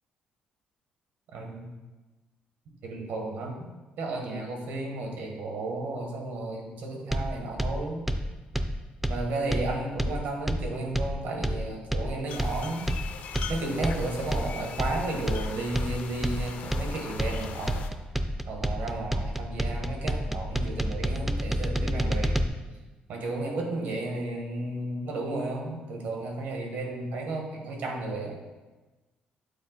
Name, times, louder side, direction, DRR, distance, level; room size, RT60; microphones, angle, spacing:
voice 1, 1.3-1.7 2.8-3.7 4.0-8.0 9.1-12.9 13.5-17.9 18.5-22.5 23.1-28.4, right 2 dB, 80° right, 1 dB, 1.5 m, -33 dB
sound 1, 7.1-22.5, equal, 5° right, 0.3 m, -29 dB
sound 2, 12.3-17.9, left 6 dB, 65° left, 0.5 m, -40 dB
8.8 x 4.3 x 4.0 m, 1.2 s
cardioid pair, 150°, 3 cm